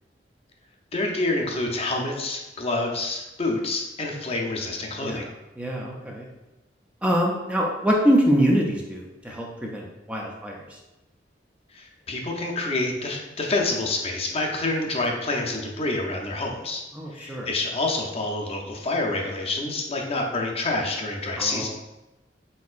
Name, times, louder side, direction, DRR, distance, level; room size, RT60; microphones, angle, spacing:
voice 1, 0.9-5.2 11.7-16.8 17.1-21.7, left 2 dB, 35° left, 0 dB, 0.6 m, -27 dB
voice 2, 5.6-6.3 7.0-10.6 16.9-17.5 21.4-21.7, equal, 5° right, -2 dB, 0.5 m, -24 dB
4.3 x 4.1 x 2.4 m, 1.0 s
head